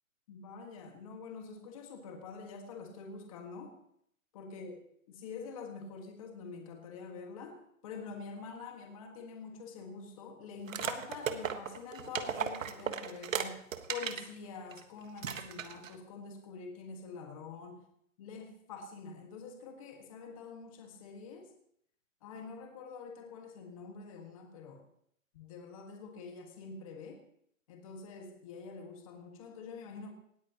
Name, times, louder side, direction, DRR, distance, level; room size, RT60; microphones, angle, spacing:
voice 1, 0.3-3.7 4.3-4.7 5.1-7.6 7.8-17.8 18.2-21.5 22.2-24.8 25.3-27.2 27.7-30.1, left 5 dB, 25° left, 3 dB, 1.6 m, -46 dB
sound 1, 10.7-14.3 14.7-14.8 15.2-15.9, right 8 dB, 70° right, 1.5 m, -36 dB
18.5 x 14.0 x 2.9 m, 0.69 s
hypercardioid pair, 170°, 41 cm